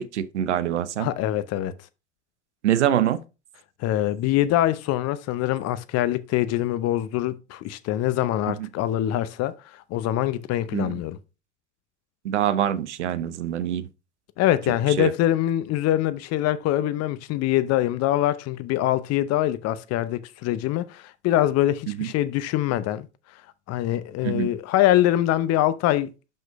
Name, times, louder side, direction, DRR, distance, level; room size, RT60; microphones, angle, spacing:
voice 1, 0.0-1.1 2.6-3.2 8.5-8.6 10.7-10.9 12.2-13.9 15.0-15.1 21.9-22.1 24.2-24.5, right 10 dB, 90° right, 0.6 m, -24 dB
voice 2, 1.0-1.7 3.8-11.2 14.4-23.1 23.7-26.1, left 13 dB, 50° left, 0.7 m, -24 dB
5.8 x 5.4 x 4.6 m
hypercardioid pair, 80°, 34 cm